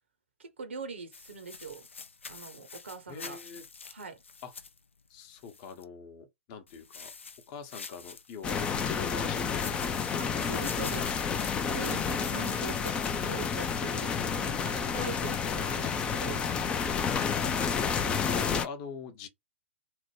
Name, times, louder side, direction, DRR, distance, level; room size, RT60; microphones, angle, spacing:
voice 1, 0.4-1.9 2.3-3.4 3.8-4.2 10.2-11.1 11.6-16.5, right 4 dB, 70° right, 0.9 m, -42 dB
sound 1, 1.1-5.8 6.7-8.7 9.3-13.7, left 5 dB, 75° left, 0.6 m, -46 dB
voice 2, 3.1-3.6 4.4-4.5 5.1-7.1 7.5-10.0 17.3-19.3, left 5 dB, 35° left, 0.8 m, -42 dB
sound 2, 8.4-18.7, left 6 dB, 15° left, 0.4 m, -30 dB
3.3 x 2.1 x 3.1 m
figure-of-eight pair, 115°, 7 cm